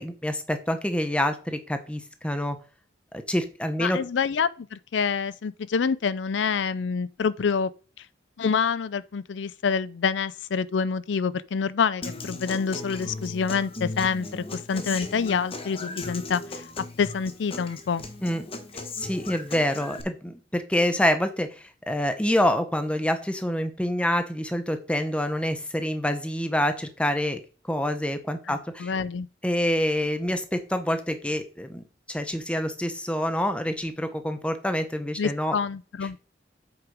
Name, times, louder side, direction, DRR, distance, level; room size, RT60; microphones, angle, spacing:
voice 1, 0.0-2.6 3.1-4.0 18.2-18.4 19.0-27.4 27.6-28.9 29.4-35.6, equal, 5° left, 0.9 m, -27 dB
voice 2, 3.8-7.7 8.0-8.1 8.4-18.1 28.5-29.3 35.2-36.2, left 6 dB, 80° left, 0.4 m, -27 dB
Human voice / Acoustic guitar, 12.0-20.0, left 2 dB, 30° left, 1.1 m, -37 dB
7.8 x 5.1 x 4.8 m
head